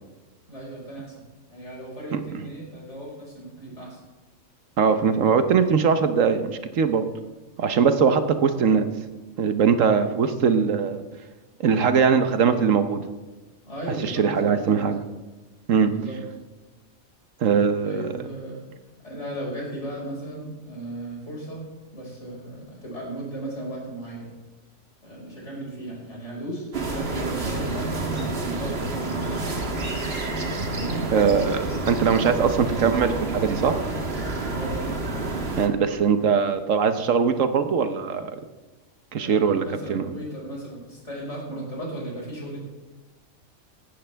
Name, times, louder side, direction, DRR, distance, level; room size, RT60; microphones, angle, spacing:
voice 1, 0.5-1.1 1.5-4.0 13.7-14.3 14.6-14.8 15.9-16.2 17.8-18.6 19.0-21.6 21.9-24.3 25.0-26.7 26.9-29.7 30.7-31.1 34.5-34.8 39.2-42.6, right 1 dB, 55° left, -3 dB, 5.5 m, -35 dB
voice 2, 4.8-7.1 7.6-8.9 9.4-11.0 11.6-13.0 14.0-15.0 15.7-15.9 17.4-18.1 31.1-33.8 35.6-38.4 39.1-40.1, right 6 dB, 70° right, 9 dB, 1.2 m, -21 dB
sound 1, 26.7-35.7, right 2 dB, 50° right, 1.7 m, -29 dB
16.0 x 12.0 x 3.4 m, 1.2 s
omnidirectional pair, 1.4 m